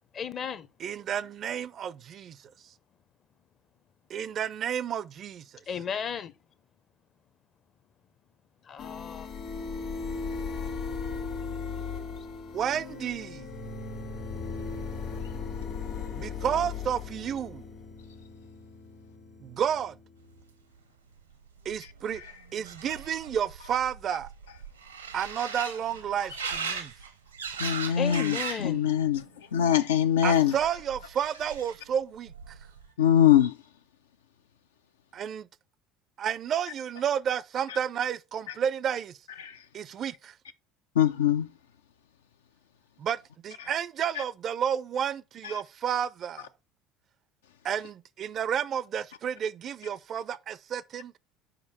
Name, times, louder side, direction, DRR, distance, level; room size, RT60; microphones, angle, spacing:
voice 1, 0.1-0.7 5.7-6.3 8.7-9.3 28.0-28.9, left 7 dB, 40° left, 0.6 m, -34 dB
voice 2, 0.8-2.4 4.1-5.4 12.5-13.5 16.1-17.6 19.4-19.9 21.7-22.2 22.5-24.3 25.1-26.9 30.2-32.5 35.1-35.5 36.2-39.2 39.7-40.3 43.0-43.2 43.4-46.5 47.6-51.1, right 8 dB, 45° right, 0.4 m, -31 dB
sound 1, 8.8-20.4, left 5 dB, 55° left, 1.7 m, -37 dB
sound 2, 21.2-21.3 21.5-28.7 29.1-29.7 30.6-31.9 32.3-32.9, right 5 dB, 85° right, 0.7 m, -39 dB
voice 3, 27.6-29.2 29.5-30.5 33.0-33.5 39.4-39.5 41.0-41.5 45.4-45.5, left 10 dB, 75° left, 0.4 m, -22 dB
5.2 x 4.8 x 4.1 m
figure-of-eight pair, 65°, 0 cm